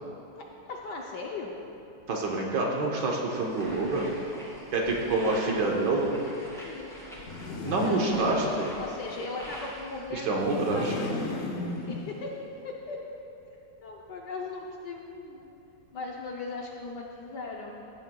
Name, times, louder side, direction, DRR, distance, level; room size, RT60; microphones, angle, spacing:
voice 1, 0.4-1.6 6.6-8.3 8.8-11.0 11.6-12.3 12.6-13.0 13.8-15.6 15.9-17.7, left 3 dB, 65° left, 0 dB, 1.1 m, -39 dB
voice 2, 2.1-4.1 4.7-6.2 7.6-8.7 10.1-10.9, right 2 dB, 60° right, -1 dB, 1.5 m, -27 dB
sound 1, 3.4-10.1, equal, ahead, 1.9 m, -45 dB
sound 2, 7.1-8.9 10.2-12.4, left 2 dB, 90° left, 0.6 m, -35 dB
15.0 x 8.9 x 2.3 m, 2.9 s
omnidirectional pair, 2.3 m